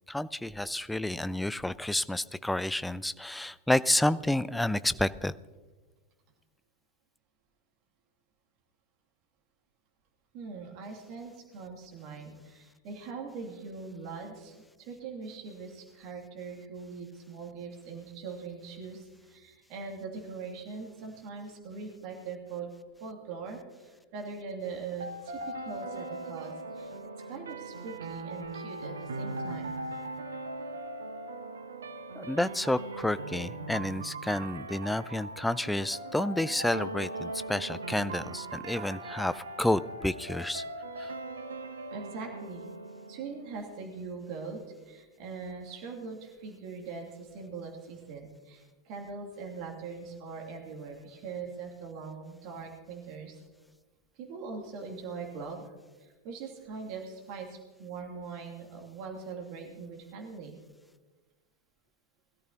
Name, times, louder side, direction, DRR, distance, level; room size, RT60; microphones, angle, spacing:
voice 1, 0.1-5.3 32.2-40.6 41.0-41.1, left 1 dB, 5° left, 16 dB, 0.4 m, -30 dB
voice 2, 10.3-22.7 23.0-26.9 27.3-29.8 41.9-42.6 43.1-53.4 54.2-55.7 56.0-60.6, right 4 dB, 45° right, 1 dB, 2.7 m, -42 dB
sound 1, 25.0-44.0, right 2 dB, 70° right, 0.9 m, -40 dB
21.0 x 13.5 x 2.9 m, 1.3 s
figure-of-eight pair, 90°, 0 cm